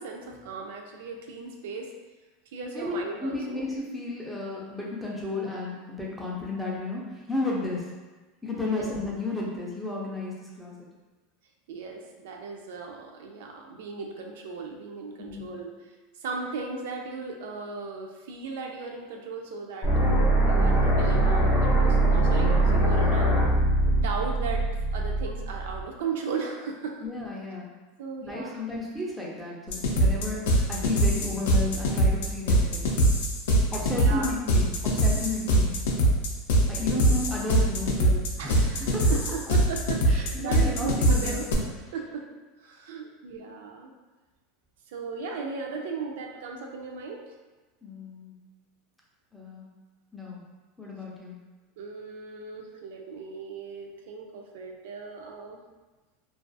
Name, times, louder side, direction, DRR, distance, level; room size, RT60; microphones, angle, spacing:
voice 1, 0.0-1.9 2.5-3.6 7.5-7.7 8.6-8.9 11.7-15.9 16.2-19.9 20.4-23.3 23.8-24.6 24.9-26.9 28.0-28.6 30.0-30.2 33.9-34.3 36.5-37.1 38.4-42.2 42.6-43.9 44.9-47.2 51.8-55.6, right 4 dB, 70° right, 1 dB, 0.3 m, -37 dB
voice 2, 2.7-7.8 8.4-10.7 15.2-15.5 27.0-27.7 28.2-32.9 33.7-35.8 36.7-39.1 40.1-41.4 47.8-48.4 49.3-49.7 50.1-50.4 50.8-51.4, left 2 dB, ahead, -5 dB, 0.3 m, -33 dB
sound 1, 19.8-25.8, right 1 dB, 30° left, 0.7 m, -22 dB
sound 2, 29.7-41.5, right 1 dB, 90° left, 0.4 m, -23 dB
2.3 x 2.2 x 2.5 m, 1.2 s
supercardioid pair, 175°, 0 cm